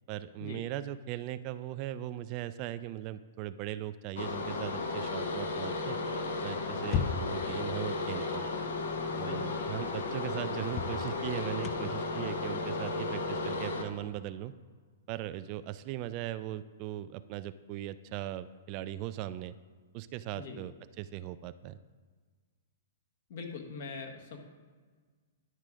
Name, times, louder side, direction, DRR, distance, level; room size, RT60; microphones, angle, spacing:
voice 1, 0.1-6.0 6.4-8.5 9.2-14.5 15.1-19.5 19.9-21.8, right 13 dB, 40° right, 13 dB, 0.3 m, -39 dB
sound 1, 4.2-13.8, left 3 dB, 75° left, 1.0 m, -34 dB
sound 2, 6.8-7.5 9.3-9.4 9.8-9.9 10.7-14.3, left 6 dB, 35° left, 0.4 m, -36 dB
voice 2, 9.1-9.5 20.4-20.6 23.3-24.4, left 4 dB, 55° left, 3 dB, 1.3 m, -42 dB
10.5 x 3.6 x 5.0 m, 1.5 s
hypercardioid pair, 130°, 0 cm